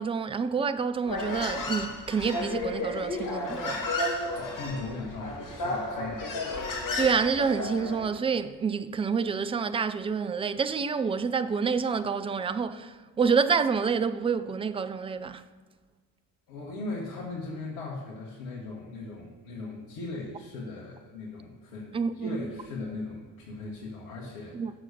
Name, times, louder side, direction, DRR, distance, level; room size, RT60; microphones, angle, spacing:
voice 1, 0.0-3.8 7.0-15.4 21.9-22.4 24.5-24.7, right 5 dB, 15° right, 0.3 m, -28 dB
Human voice, 1.0-8.1, left 2 dB, 40° left, 2.1 m, -32 dB
voice 2, 4.3-6.7 16.5-24.6, left 3 dB, 65° left, 1.7 m, -38 dB
7.7 x 6.5 x 6.6 m
hypercardioid pair, 55°, 49 cm